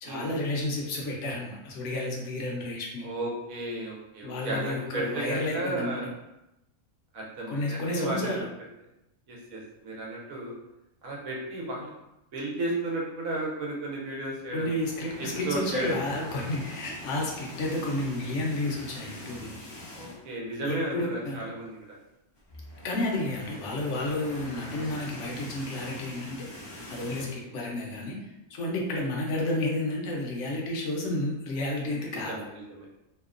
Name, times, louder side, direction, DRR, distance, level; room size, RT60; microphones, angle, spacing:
voice 1, 0.0-3.1 4.2-6.1 7.5-8.5 14.5-19.5 20.6-21.4 22.8-26.4 26.9-32.4, left 1 dB, 70° left, -1 dB, 0.9 m, -31 dB
voice 2, 3.0-6.1 7.1-8.3 9.3-10.5 11.0-11.9 12.3-14.7 15.2-16.0 19.9-22.0 27.2-27.5 32.1-32.9, right 2 dB, 85° right, -3 dB, 1.1 m, -34 dB
sound 1, 14.6-20.4 20.8-20.9 21.2-21.3 22.4-27.4, left 1 dB, 40° left, 0.3 m, -44 dB
2.9 x 2.1 x 2.4 m, 0.92 s
omnidirectional pair, 1.4 m